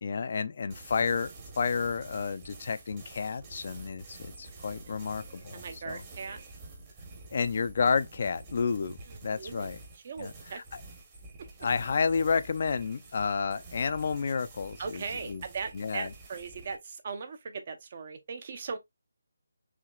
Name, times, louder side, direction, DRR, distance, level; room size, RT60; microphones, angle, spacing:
voice 1, 0.0-6.0 7.3-9.8 10.2-10.3 11.6-15.4 15.7-16.1, left 5 dB, 45° left, 0.5 m, -30 dB
sound 1, 0.7-16.8, right 3 dB, 20° right, 1.1 m, -49 dB
voice 2, 5.5-6.4 9.1-9.7 9.9-10.6 14.8-18.8, right 5 dB, 40° right, 0.8 m, -39 dB
5.8 x 2.8 x 2.4 m
figure-of-eight pair, 165°, 0 cm